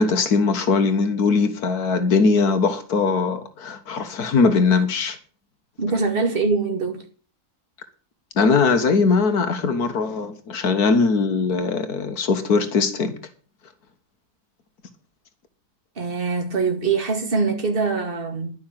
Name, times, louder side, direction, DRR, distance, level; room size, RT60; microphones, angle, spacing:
voice 1, 0.0-5.2 8.4-13.2, left 4 dB, 85° left, 1.9 m, -20 dB
voice 2, 5.8-7.0 16.0-18.5, right 4 dB, 35° right, 2.3 m, -23 dB
11.5 x 6.4 x 8.9 m
omnidirectional pair, 1.6 m